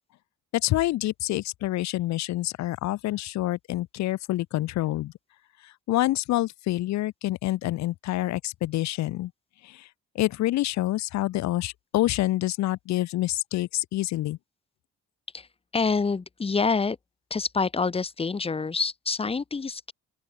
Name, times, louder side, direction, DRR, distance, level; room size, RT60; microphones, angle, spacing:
voice 1, 0.5-5.1 5.6-9.3 9.6-9.9 10.2-14.4, left 16 dB, 65° left, 0.5 m, -27 dB
voice 2, 15.7-17.0 17.3-19.9, left 4 dB, 20° left, 0.7 m, -27 dB
open air
cardioid pair, 90°, 30 cm